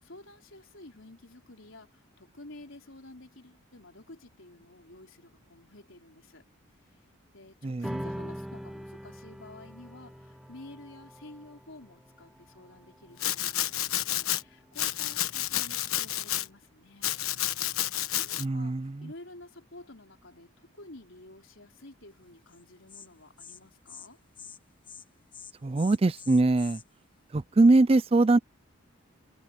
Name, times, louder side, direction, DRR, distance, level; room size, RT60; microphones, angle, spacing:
voice 1, 0.0-6.4 6.8-7.0 7.3-17.2 18.2-24.2, left 2 dB, 65° left, 4.2 m, -51 dB
voice 2, 7.6-8.0 18.4-19.1 25.6-26.8 27.3-28.4, right 2 dB, 25° right, 0.4 m, -22 dB
sound 1, 7.8-14.6, equal, ahead, 0.8 m, -43 dB
Domestic sounds home sounds, 13.2-14.4 14.8-16.5 17.0-18.4, left 13 dB, 80° left, 1.2 m, -30 dB
Insect, 22.5-22.6 22.9-23.1 23.4-23.6 23.9-24.1 24.3-24.6 24.8-25.1 25.3-26.8, left 7 dB, 20° left, 1.7 m, -47 dB
head